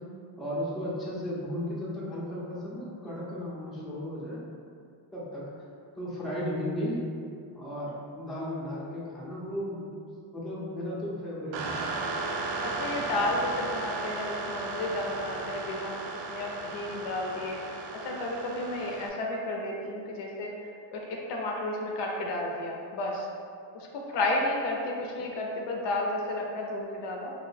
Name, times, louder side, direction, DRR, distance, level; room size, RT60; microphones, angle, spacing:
voice 1, 0.4-4.4 5.1-5.5 6.0-7.0 7.5-9.9 10.3-11.8 15.5-15.6, equal, ahead, -8 dB, 0.5 m, -35 dB
sound 1, 11.5-19.1, right 3 dB, 65° right, 0.6 m, -35 dB
voice 2, 12.6-20.5 20.9-23.3 23.7-27.3, left 2 dB, 60° left, -1 dB, 0.6 m, -32 dB
2.8 x 2.0 x 4.0 m, 2.4 s
cardioid pair, 115°, 48 cm